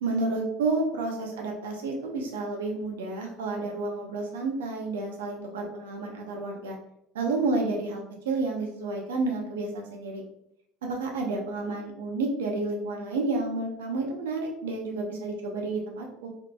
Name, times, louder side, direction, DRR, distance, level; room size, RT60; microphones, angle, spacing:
voice 1, 0.0-6.8 7.1-10.2 10.8-16.3, right 3 dB, 90° right, 1 dB, 0.7 m, -30 dB
3.6 x 3.1 x 2.3 m, 0.75 s
hypercardioid pair, 80°, 0 cm